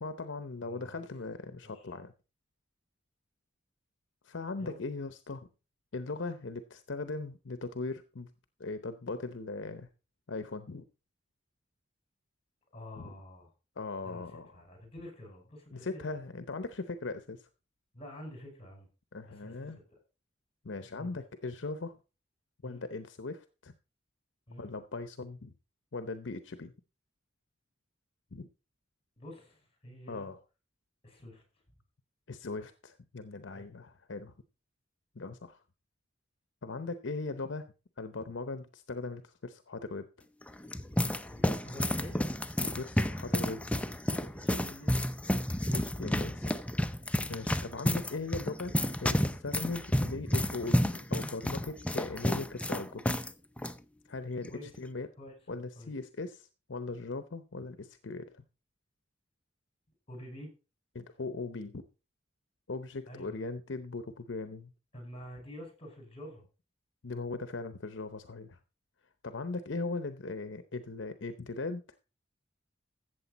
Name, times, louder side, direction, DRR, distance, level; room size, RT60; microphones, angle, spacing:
voice 1, 0.0-2.1 4.2-5.5 5.9-8.3 8.6-9.9 10.3-10.8 13.0-13.1 13.8-14.5 15.7-17.5 19.1-19.8 20.6-22.0 22.6-23.7 24.6-25.5 25.9-26.7 28.3-28.5 30.1-30.4 32.3-34.3 35.1-35.6 36.6-40.1 42.6-43.6 45.7-46.6 47.0-48.7 49.0-53.2 54.1-55.1 55.5-58.3 60.9-61.8 62.7-64.7 67.0-68.6 69.2-71.8, left 3 dB, 70° left, 10 dB, 0.8 m, -39 dB
voice 2, 0.6-1.0 1.6-1.8 4.6-4.8 12.7-13.5 14.0-16.0 17.9-18.9 19.2-19.7 20.9-21.2 22.6-22.8 24.5-24.7 29.2-30.3 31.0-31.4 33.5-33.7 41.3-42.2 44.3-45.0 54.5-54.7 55.2-55.9 60.1-60.5 63.1-63.4 64.9-66.4, left 1 dB, 30° left, 4 dB, 5.4 m, -48 dB
sound 1, 40.4-53.3 53.6-53.7 54.4-54.7, equal, 5° left, 0.6 m, -31 dB
14.0 x 7.8 x 4.1 m, 0.32 s
head